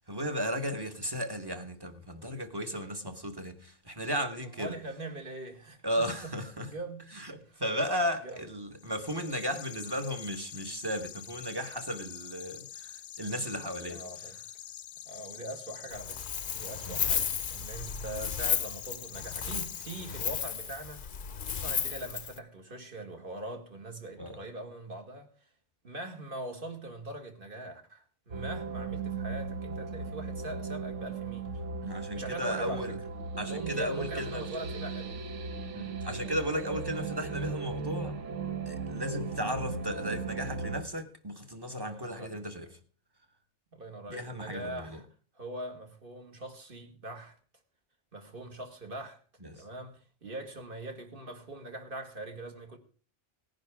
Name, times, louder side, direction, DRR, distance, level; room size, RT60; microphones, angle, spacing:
voice 1, 0.1-4.8 5.8-6.7 7.1-7.3 7.6-14.0 16.9-17.0 24.2-24.4 31.8-32.9 33.4-34.4 35.7-38.1 38.7-42.7 44.1-45.0 49.4-49.6, equal, 20° right, 1.2 m, -35 dB
voice 2, 4.4-6.3 6.6-7.1 7.3-7.6 8.2-8.4 13.8-14.4 15.1-21.0 21.4-25.3 25.8-31.5 31.9-33.0 33.4-35.2 41.7-42.4 43.7-45.1 45.4-47.4 48.1-49.2 49.5-52.8, right 2 dB, 45° right, 2.1 m, -42 dB
sound 1, 8.8-20.6, left 10 dB, 90° left, 1.2 m, -46 dB
Wind, 15.9-22.4, left 7 dB, 50° left, 0.8 m, -34 dB
sound 2, 28.3-40.8, right 4 dB, 75° right, 1.3 m, -37 dB
18.0 x 10.5 x 3.6 m
omnidirectional pair, 1.3 m